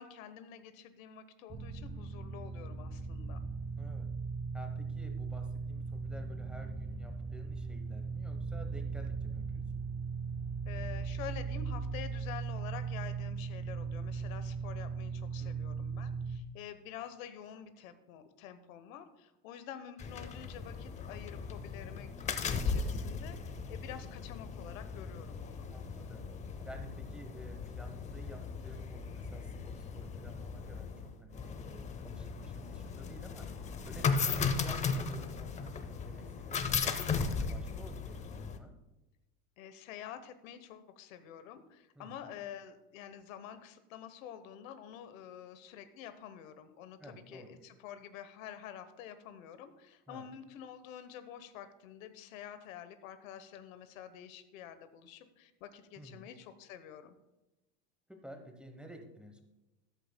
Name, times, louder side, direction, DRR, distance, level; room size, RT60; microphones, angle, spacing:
voice 1, 0.0-3.4 10.6-25.7 39.6-57.1, left 9 dB, 85° left, 11 dB, 1.1 m, -48 dB
sound 1, 1.5-16.4, right 5 dB, 25° right, 1.7 m, -38 dB
voice 2, 3.8-4.1 4.5-9.8 15.4-16.2 25.7-26.3 26.7-38.7 42.0-42.2 47.0-47.6 50.1-50.3 56.0-56.3 58.1-59.4, right 1 dB, ahead, 4 dB, 0.9 m, -52 dB
sound 2, 20.0-38.6, left 5 dB, 20° left, 0.5 m, -37 dB
13.5 x 11.5 x 2.2 m, 1.0 s
supercardioid pair, 150°, 39 cm